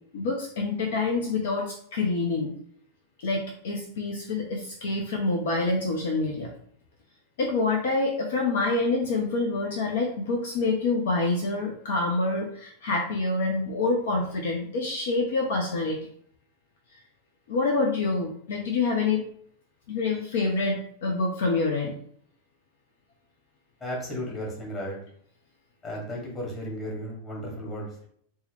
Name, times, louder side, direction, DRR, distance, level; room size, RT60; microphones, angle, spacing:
voice 1, 0.1-2.5 3.2-6.5 7.4-16.0 17.5-19.3 19.9-21.9, left 3 dB, 55° left, 1 dB, 0.5 m, -27 dB
voice 2, 23.8-25.0 25.8-28.1, equal, 25° left, -2 dB, 1.2 m, -34 dB
3.2 x 2.1 x 3.3 m, 0.63 s
figure-of-eight pair, 90°, 0 cm